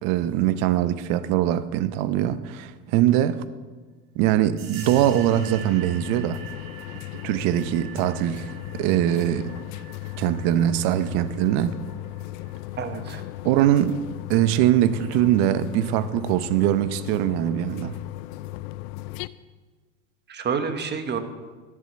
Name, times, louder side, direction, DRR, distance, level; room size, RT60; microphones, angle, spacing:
voice 1, 0.0-3.4 4.1-6.4 7.2-8.5 8.7-9.5 10.2-11.8 13.4-14.0 14.3-18.0, right 12 dB, 65° right, 0.8 m, -22 dB
sound 1, 4.6-12.9, right 7 dB, 85° right, 2.2 m, -45 dB
sound 2, 4.8-19.3, left 17 dB, 65° left, 0.5 m, -36 dB
voice 2, 12.8-13.2 20.3-21.2, right 6 dB, 30° right, 1.2 m, -28 dB
11.5 x 7.4 x 7.6 m
supercardioid pair, 110°, 37 cm